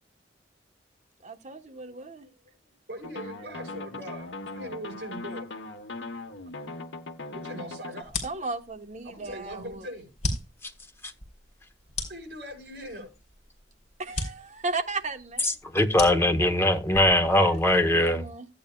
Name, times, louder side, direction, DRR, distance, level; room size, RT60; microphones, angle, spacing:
voice 1, 1.2-2.3 8.2-9.8 14.0-15.6 17.2-18.5, right 3 dB, 40° right, 1.1 m, -36 dB
voice 2, 1.9-2.6 2.9-4.3 4.5-5.5 7.3-8.2 9.0-10.1 12.1-13.1 17.0-17.5, equal, 60° right, 5.5 m, -41 dB
sound 1, 3.0-8.0, left 2 dB, 80° left, 1.1 m, -39 dB
sound 2, 8.0-17.9, left 2 dB, 40° left, 3.1 m, -38 dB
voice 3, 15.7-18.2, left 1 dB, 15° left, 1.0 m, -21 dB
15.0 x 8.7 x 2.3 m
head